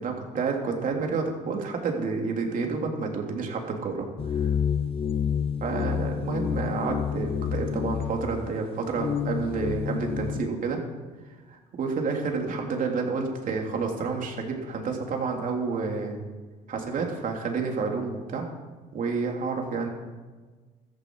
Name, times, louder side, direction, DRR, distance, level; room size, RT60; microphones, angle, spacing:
voice 1, 0.0-4.1 4.3-4.5 5.6-10.8 11.8-16.2 16.7-18.5 18.9-19.9, right 4 dB, 50° right, 1 dB, 3.1 m, -29 dB
sound 1, 4.2-10.5, left 8 dB, 35° left, 0.6 m, -29 dB
15.0 x 14.0 x 4.7 m, 1.3 s
cardioid pair, 110°, 17 cm